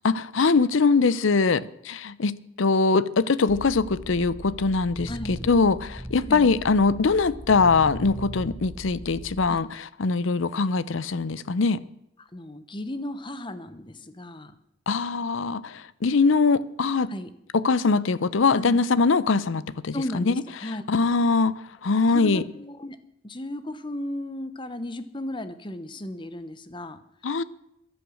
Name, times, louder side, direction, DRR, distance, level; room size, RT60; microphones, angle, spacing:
voice 1, 0.0-11.8 14.9-17.1 17.5-20.3 20.9-21.5 21.8-22.4 27.2-27.4, left 4 dB, 70° left, 0.6 m, -22 dB
sound 1, 3.5-9.5, equal, 5° right, 1.1 m, -39 dB
voice 2, 5.1-5.5 6.2-6.5 9.5-9.6 12.2-14.5 17.1-17.3 18.5-18.8 19.9-20.8 21.9-23.0 23.2-27.0, left 1 dB, 25° left, 0.9 m, -35 dB
14.0 x 11.5 x 6.4 m
head